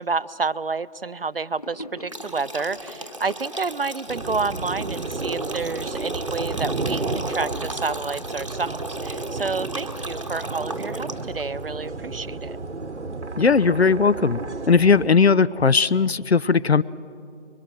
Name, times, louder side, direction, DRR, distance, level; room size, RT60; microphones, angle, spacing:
voice 1, 0.0-12.6, right 4 dB, 55° right, 16 dB, 0.6 m, -29 dB
Gurgling / Sink (filling or washing), 1.6-6.1, left 1 dB, 35° left, 1.2 m, -43 dB
sound 1, 2.1-11.4, right 1 dB, 30° right, 1.0 m, -36 dB
sound 2, 4.1-15.1, right 3 dB, 80° right, 1.2 m, -32 dB
voice 2, 13.4-14.4 14.7-16.8, left 5 dB, 65° left, 18 dB, 0.6 m, -18 dB
26.0 x 23.0 x 6.2 m, 2.4 s
figure-of-eight pair, 170°, 34 cm